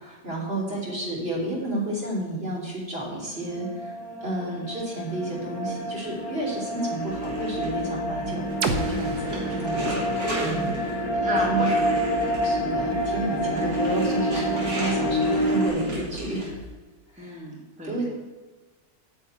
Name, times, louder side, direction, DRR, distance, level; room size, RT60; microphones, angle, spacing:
voice 1, 0.0-3.9 4.2-11.1 11.5-11.7 12.4-16.6 17.1-17.4 17.8-18.1, right 2 dB, 40° right, -4 dB, 3.6 m, -31 dB
sound 1, 3.4-15.7, equal, 15° left, 4.3 m, -27 dB
sound 2, 7.0-16.7, equal, 70° right, 3.3 m, -36 dB
sound 3, 8.6-12.5, right 4 dB, 85° right, 1.6 m, -34 dB
voice 2, 11.2-12.4 13.6-13.7 17.2-18.1, right 1 dB, 5° right, -3 dB, 1.7 m, -34 dB
9.5 x 7.2 x 8.3 m, 1.3 s
omnidirectional pair, 1.6 m